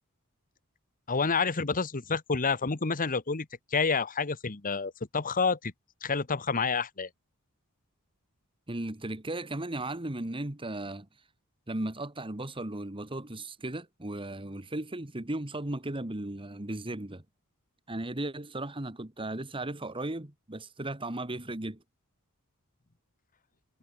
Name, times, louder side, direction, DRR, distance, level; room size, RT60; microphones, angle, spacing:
voice 1, 1.1-5.7 6.0-7.1, left 4 dB, 40° left, 1.2 m, -29 dB
voice 2, 8.7-11.1 11.7-17.2 17.9-21.8, right 1 dB, 25° right, 1.7 m, -36 dB
head